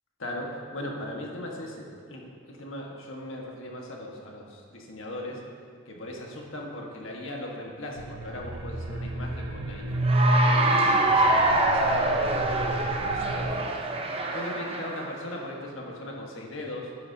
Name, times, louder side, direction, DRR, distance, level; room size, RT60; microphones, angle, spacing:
voice 1, 0.2-5.4 5.9-9.9 10.5-13.7 14.3-16.9, left 1 dB, 65° left, -1 dB, 1.5 m, -38 dB
sound 1, 8.0-13.5, right 1 dB, 85° right, 0.8 m, -29 dB
Cheering / Applause, 10.0-15.2, right 2 dB, 25° right, 0.7 m, -25 dB
12.0 x 9.7 x 2.8 m, 2.3 s
head